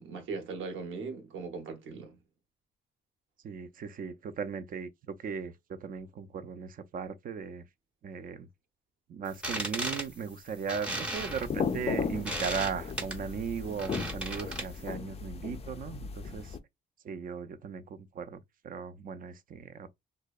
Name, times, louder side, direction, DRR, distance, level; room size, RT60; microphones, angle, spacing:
voice 1, 0.0-2.2, right 4 dB, 80° right, 0.8 m, -39 dB
voice 2, 3.4-7.6 8.0-8.5 9.1-16.6 17.0-19.9, right 6 dB, 45° right, 0.4 m, -37 dB
sound 1, 9.3-14.9, right 1 dB, 5° right, 0.7 m, -37 dB
sound 2, 11.1-16.6, left 6 dB, 30° left, 0.4 m, -36 dB
2.6 x 2.1 x 2.3 m
cardioid pair, 90°, 20 cm